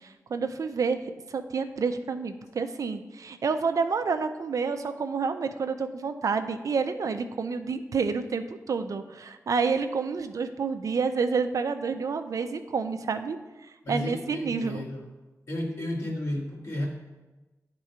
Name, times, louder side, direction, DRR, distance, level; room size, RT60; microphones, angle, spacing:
voice 1, 0.0-13.4 13.9-14.8, right 5 dB, 70° right, 8 dB, 0.5 m, -29 dB
voice 2, 13.8-15.0 15.5-16.9, left 1 dB, 55° left, -2 dB, 1.8 m, -32 dB
10.5 x 3.8 x 4.4 m, 1.1 s
wide cardioid pair, 85°, 6 cm